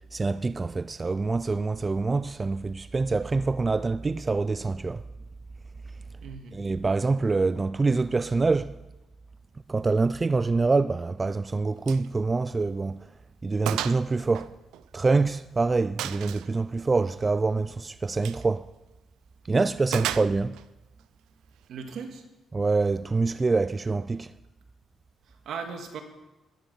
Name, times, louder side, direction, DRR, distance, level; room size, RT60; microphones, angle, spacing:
voice 1, 0.1-5.0 6.5-8.7 9.7-13.1 13.4-14.5 14.9-18.7 19.5-20.5 22.5-24.3, right 3 dB, 25° right, 0.3 m, -25 dB
voice 2, 6.2-6.6 19.9-20.1 21.7-22.2 25.3-26.0, right 6 dB, 70° right, 1.9 m, -38 dB
Gunshot gunfire, 11.9-12.1 12.4-12.5 13.0-13.1 13.7-14.0 14.3-15.3 16.0-16.5 18.1-18.4 19.9-20.7, right 12 dB, 90° right, 0.5 m, -33 dB
14.0 x 11.5 x 5.6 m
cardioid pair, 90°, 0 cm